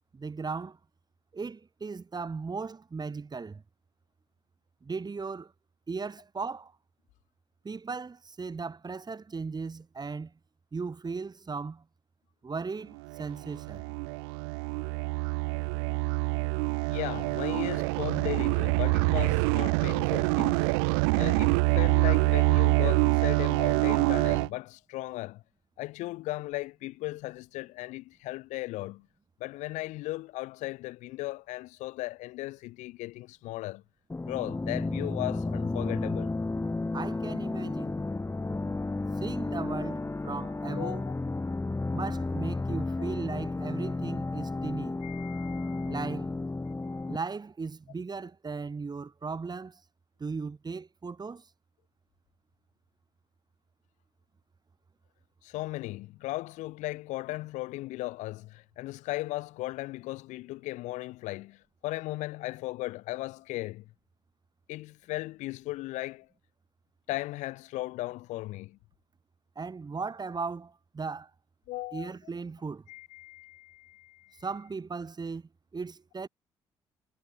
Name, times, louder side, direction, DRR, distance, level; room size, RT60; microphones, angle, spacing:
voice 1, 0.1-0.8 1.3-3.6 4.8-5.5 5.9-6.7 7.6-10.3 10.7-11.8 12.4-13.8 36.9-38.0 39.2-41.1 41.9-45.0 45.8-46.3 47.1-49.8 50.2-51.5 69.6-71.3 71.9-72.8 74.4-76.3, right 4 dB, 30° right, 6.3 m, -37 dB
sound 1, 13.1-24.5, right 38 dB, 65° right, 0.5 m, -26 dB
voice 2, 16.9-20.7 21.1-25.4 25.8-29.1 29.4-33.8 34.3-36.4 40.8-41.0 45.0-45.9 55.4-63.9 64.7-66.3 67.1-68.8 71.7-72.1 72.9-74.4, left 18 dB, 65° left, 2.1 m, -37 dB
sound 2, 34.1-47.2, left 3 dB, 20° left, 4.1 m, -32 dB
figure-of-eight pair, 45°, 14 cm